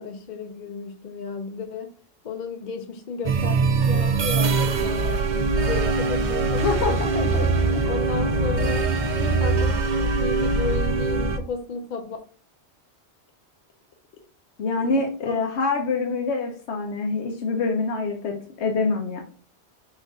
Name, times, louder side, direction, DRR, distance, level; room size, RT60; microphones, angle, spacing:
voice 1, 0.0-2.0 2.2-7.0 7.8-12.2 14.8-15.0 15.3-15.4, left 5 dB, 50° left, 0.7 m, -33 dB
sound 1, 3.2-11.4, right 4 dB, 50° right, 0.6 m, -22 dB
voice 2, 6.6-7.5 14.6-19.2, left 4 dB, 75° left, 1.1 m, -25 dB
5.2 x 2.5 x 3.6 m
omnidirectional pair, 1.2 m